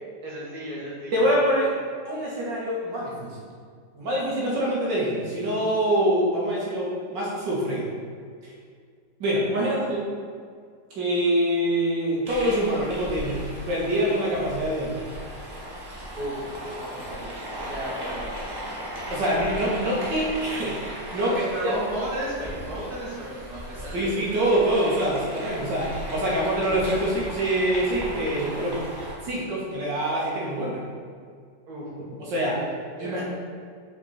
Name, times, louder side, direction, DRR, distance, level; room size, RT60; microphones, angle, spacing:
voice 1, 0.2-1.6 16.2-16.5 16.8-18.7 21.2-24.1 31.7-32.2 32.5-32.7 33.0-33.2, right 1 dB, 60° right, -7 dB, 2.1 m, -34 dB
voice 2, 1.1-1.7 2.1-3.4 4.0-7.9 8.4-8.5 9.2-10.1 10.9-15.0 19.1-20.8 21.1-21.7 23.9-28.8 29.2-30.8 32.2-32.6 33.0-33.2, right 1 dB, 90° right, -5 dB, 2.3 m, -25 dB
sound 1, 12.2-29.2, equal, 20° right, 0.7 m, -37 dB
6.1 x 5.4 x 4.3 m, 2.1 s
omnidirectional pair, 1.9 m